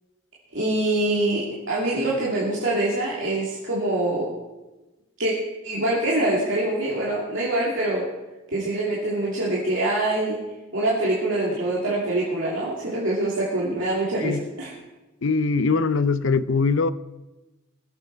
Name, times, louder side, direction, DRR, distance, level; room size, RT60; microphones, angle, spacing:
voice 1, 0.5-4.3 5.2-5.3 5.6-8.1 8.5-10.4 10.7-14.7, right 1 dB, 65° right, 2.8 m, -24 dB
voice 2, 15.2-16.9, left 4 dB, 65° left, 0.5 m, -22 dB
21.5 x 7.9 x 4.7 m
head